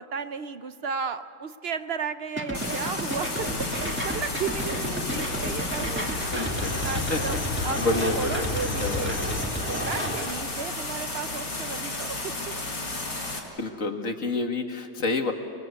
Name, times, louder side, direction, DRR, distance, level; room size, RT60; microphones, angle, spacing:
voice 1, 0.0-7.4 7.6-7.9 8.1-12.5, right 6 dB, 55° right, 11 dB, 0.7 m, -34 dB
sound 1, 2.4-10.3, equal, 5° right, 1.7 m, -32 dB
sound 2, 2.5-13.4, left 2 dB, 70° left, 4.7 m, -33 dB
sound 3, 3.4-9.4, left 3 dB, 85° left, 2.3 m, -36 dB
voice 2, 6.3-8.5 8.8-9.1 13.6-15.3, left 2 dB, 45° left, 5 dB, 2.1 m, -29 dB
30.0 x 21.0 x 8.2 m, 2.5 s
omnidirectional pair, 1.9 m